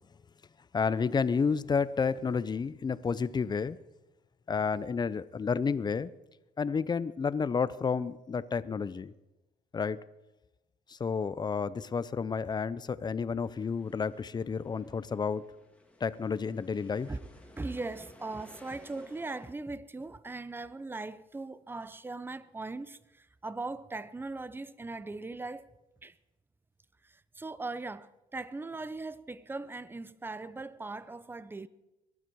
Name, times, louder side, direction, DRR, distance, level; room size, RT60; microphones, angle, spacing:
voice 1, 0.7-3.8 4.5-6.1 6.6-9.1 9.7-10.0 10.9-15.4 16.0-17.1, left 5 dB, 25° left, 0.6 m, -31 dB
sound 1, 13.4-19.5, left 2 dB, 5° left, 2.0 m, -57 dB
voice 2, 17.6-25.7 26.0-26.2 27.0-31.7, right 3 dB, 10° right, 0.6 m, -39 dB
21.5 x 12.0 x 4.7 m
cardioid pair, 110°, 17 cm